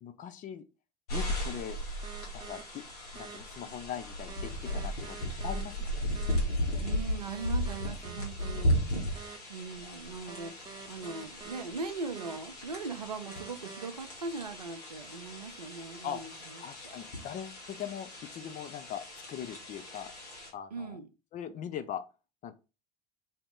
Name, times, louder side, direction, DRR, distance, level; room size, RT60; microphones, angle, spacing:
voice 1, 0.0-0.7 1.1-1.8 2.3-2.8 3.1-6.2 9.8-10.4 16.0-16.2 16.6-20.1 20.5-21.0 21.3-22.0 22.4-22.5, left 9 dB, 40° left, 0.6 m, -41 dB
sound 1, 1.1-20.5, equal, 75° left, 1.3 m, -36 dB
sound 2, 2.0-2.6 3.2-3.4 4.3-5.6 6.2-6.4 7.3-8.6 9.2-9.4 10.3-11.6 12.2-12.4 13.3-13.9, right 6 dB, 20° right, 0.7 m, -46 dB
voice 2, 6.8-8.8 9.5-16.3 20.7-21.1, right 4 dB, 85° right, 0.4 m, -40 dB
2.8 x 2.8 x 3.6 m
figure-of-eight pair, 60°, 20 cm